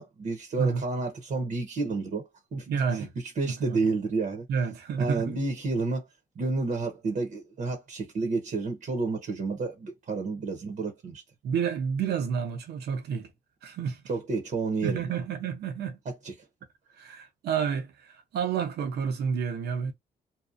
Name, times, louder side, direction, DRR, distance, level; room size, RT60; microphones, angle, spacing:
voice 1, 0.0-4.5 5.0-6.1 6.4-11.2 14.1-15.2 16.2-16.3, right 3 dB, 55° right, 0.8 m, -30 dB
voice 2, 2.7-3.1 3.5-3.9 4.5-5.4 11.4-13.3 13.6-14.0 14.8-16.0 16.9-19.9, right 6 dB, 85° right, 0.7 m, -30 dB
2.7 x 2.0 x 2.5 m
cardioid pair, 85°, 16 cm